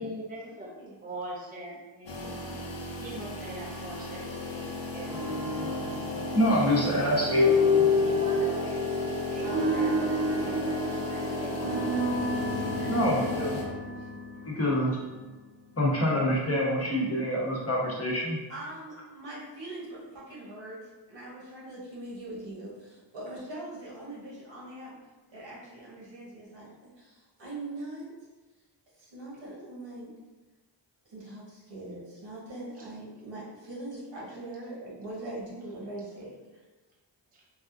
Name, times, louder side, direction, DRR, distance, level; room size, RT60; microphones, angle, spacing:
voice 1, 0.0-0.7 1.0-2.4 3.0-5.2 6.6-6.7 7.0-8.7 9.3-11.6 12.7-13.0 16.7-16.9 17.2-17.7 37.3-37.4, right 1 dB, 20° right, -4 dB, 0.5 m, -42 dB
sound 1, 2.1-13.6, left 2 dB, 80° left, 0.7 m, -35 dB
sound 2, 5.1-15.1, left 2 dB, 55° right, 0.9 m, -29 dB
voice 2, 6.3-7.5 12.9-13.6 14.4-15.0 15.8-18.4, equal, 35° left, -5 dB, 0.9 m, -26 dB
voice 3, 12.6-14.4 18.5-25.0 25.3-28.1 29.0-30.1 31.1-36.3, right 2 dB, 75° right, -6 dB, 1.2 m, -42 dB
3.4 x 2.4 x 2.4 m, 1.2 s
cardioid pair, 55°, 44 cm